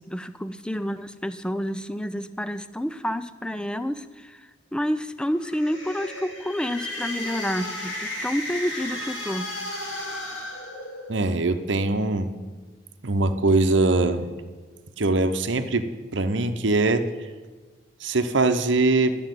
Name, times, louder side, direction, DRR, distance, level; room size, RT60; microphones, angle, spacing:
voice 1, 0.0-9.5, equal, 5° left, 12 dB, 0.4 m, -29 dB
sound 1, 5.3-11.4, left 1 dB, 80° left, 3.8 m, -34 dB
voice 2, 11.1-12.3 13.0-14.3 15.0-15.8 16.1-17.0 18.0-19.2, right 2 dB, 70° right, 9 dB, 0.9 m, -22 dB
11.5 x 7.1 x 9.1 m, 1.4 s
head